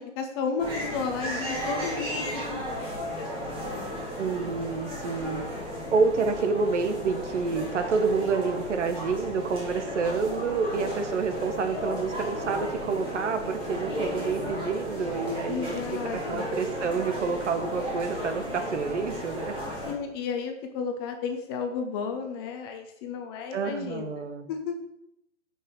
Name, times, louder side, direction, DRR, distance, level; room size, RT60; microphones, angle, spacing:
voice 1, 0.0-3.3 3.6-4.0 15.5-16.5 19.9-24.7, left 5 dB, 20° left, 4 dB, 0.6 m, -33 dB
sound 1, 0.6-19.9, equal, 15° right, 2.5 m, -34 dB
voice 2, 4.2-5.4 5.9-19.6 23.5-24.5, right 4 dB, 70° right, 7 dB, 1.3 m, -28 dB
9.3 x 5.5 x 3.9 m, 0.81 s
hypercardioid pair, 140°, 37 cm